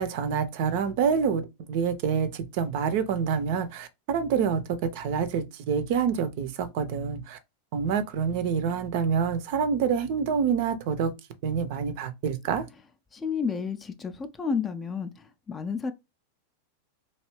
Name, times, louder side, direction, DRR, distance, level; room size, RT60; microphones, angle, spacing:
voice 1, 0.0-7.4 7.7-11.1 11.4-12.7, right 6 dB, 45° right, 0.5 m, -27 dB
voice 2, 13.1-15.1 15.5-15.9, left 5 dB, 20° left, 0.4 m, -30 dB
2.9 x 2.7 x 3.0 m
figure-of-eight pair, 90°, 0 cm